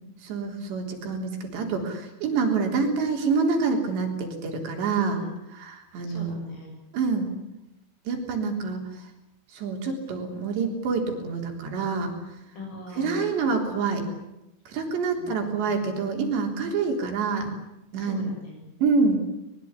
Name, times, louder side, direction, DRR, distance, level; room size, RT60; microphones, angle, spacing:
voice 1, 0.2-5.2 5.6-6.4 6.9-7.3 8.1-8.8 9.5-12.1 13.0-14.1 14.7-17.6 17.9-18.3 18.8-19.2, right 4 dB, 60° right, 3 dB, 5.8 m, -26 dB
voice 2, 5.1-5.5 6.0-6.7 10.1-10.4 12.6-13.4 15.2-15.9 18.0-18.7, left 1 dB, 85° left, 2 dB, 10.5 m, -41 dB
23.5 x 22.0 x 9.8 m, 0.89 s
omnidirectional pair, 5.8 m